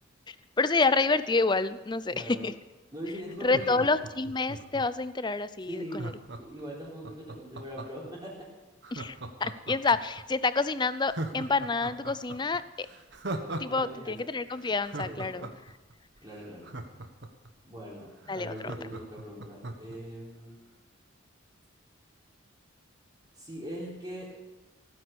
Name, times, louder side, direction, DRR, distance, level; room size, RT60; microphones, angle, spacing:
voice 1, 0.3-2.5 3.4-6.1 8.9-12.9 13.6-15.5 18.3-18.5, left 3 dB, 20° left, 14 dB, 0.5 m, -28 dB
voice 2, 2.1-2.5 2.9-3.8 5.7-6.1 6.4-8.3 13.7-14.3 15.0-15.5 16.2-16.7 17.6-18.1 18.3-20.6 23.4-24.3, equal, 20° right, -6 dB, 3.7 m, -41 dB
Laughter, 3.3-5.0 5.9-8.1 8.8-10.2 10.6-10.7 11.1-13.8 14.1-14.2 14.6-17.5 17.9-18.0 18.2-20.0 20.3-20.4, right 2 dB, 55° right, 1.4 m, -39 dB
16.5 x 9.6 x 7.0 m, 1.1 s
head